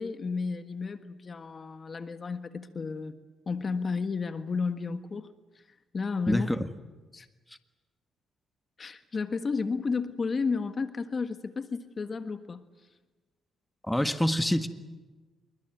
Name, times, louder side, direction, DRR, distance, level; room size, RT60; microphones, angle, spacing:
voice 1, 0.0-3.1 3.5-5.3 5.9-6.5 7.1-7.3 8.8-12.6, left 4 dB, 35° left, 1.5 m, -32 dB
voice 2, 6.3-6.7 13.9-14.7, left 1 dB, 5° left, 1.7 m, -26 dB
27.5 x 23.0 x 9.2 m
cardioid pair, 90°, 0 cm